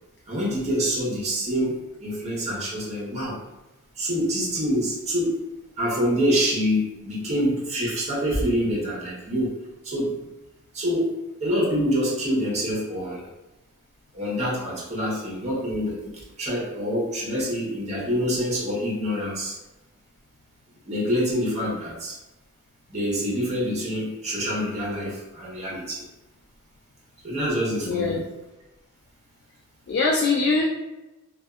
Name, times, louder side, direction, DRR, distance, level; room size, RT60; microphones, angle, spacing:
voice 1, 0.3-3.4 4.0-5.4 5.8-9.6 9.8-10.3 10.7-11.1 11.4-13.3 14.1-16.1 16.4-19.6 20.8-22.2 22.9-26.1 27.2-28.2, equal, 30° right, -5 dB, 0.8 m, -26 dB
voice 2, 27.8-28.2 29.9-30.6, left 3 dB, 50° left, -3 dB, 0.3 m, -22 dB
2.5 x 2.2 x 2.3 m, 1.0 s
head